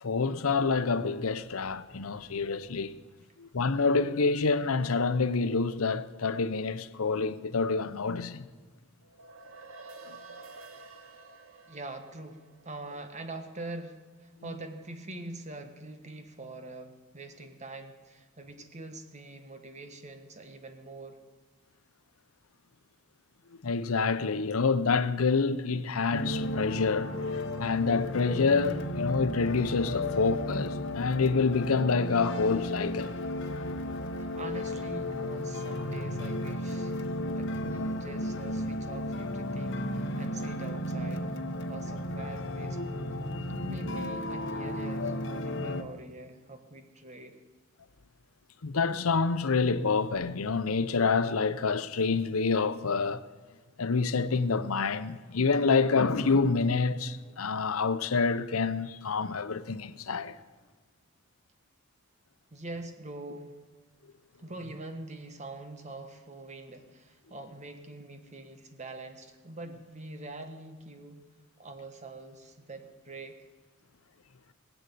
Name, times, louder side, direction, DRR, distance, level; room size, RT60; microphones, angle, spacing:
voice 1, 0.0-2.9 3.4-8.5 23.6-33.1 48.6-53.2 53.8-60.3, left 4 dB, 85° left, 0.8 m, -27 dB
sound 1, 9.0-13.6, right 3 dB, 80° right, 1.4 m, -50 dB
voice 2, 11.7-21.2 34.2-36.9 37.3-41.3 41.7-47.4 62.5-63.6 64.4-71.2 71.6-73.3, right 2 dB, 35° right, 1.5 m, -44 dB
sound 2, 26.1-45.8, left 1 dB, 60° left, 1.1 m, -34 dB
21.0 x 8.0 x 8.4 m
head